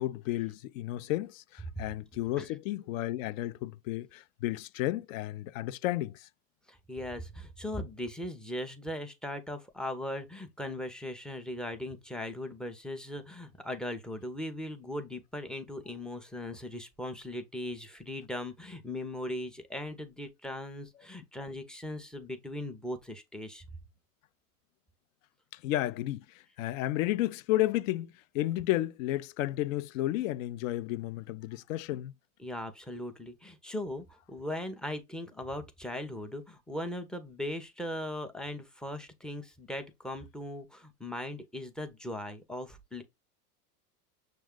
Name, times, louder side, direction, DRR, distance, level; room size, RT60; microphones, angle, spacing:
voice 1, 0.0-6.3 25.5-26.2 26.6-32.1, left 15 dB, 60° left, 0.5 m, -32 dB
voice 2, 6.7-23.6 32.4-43.0, left 1 dB, ahead, 0.4 m, -39 dB
6.4 x 2.3 x 3.6 m
hypercardioid pair, 120°, 46 cm